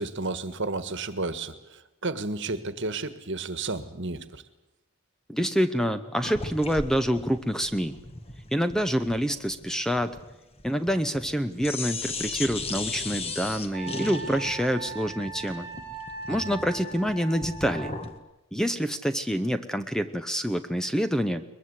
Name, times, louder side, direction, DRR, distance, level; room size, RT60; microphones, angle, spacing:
voice 1, 0.0-4.4 16.3-16.6, right 3 dB, 55° right, 12 dB, 1.5 m, -32 dB
voice 2, 5.3-8.0 8.5-10.2 10.6-15.7 16.3-17.9 18.5-21.4, equal, ahead, 10 dB, 0.8 m, -27 dB
sound 1, 6.2-11.4 11.6-18.2, left 3 dB, 25° left, 1.6 m, -37 dB
Wind instrument woodwind instrument, 13.7-17.9, right 4 dB, 50° left, 5.9 m, -39 dB
22.5 x 21.5 x 8.2 m, 0.98 s
head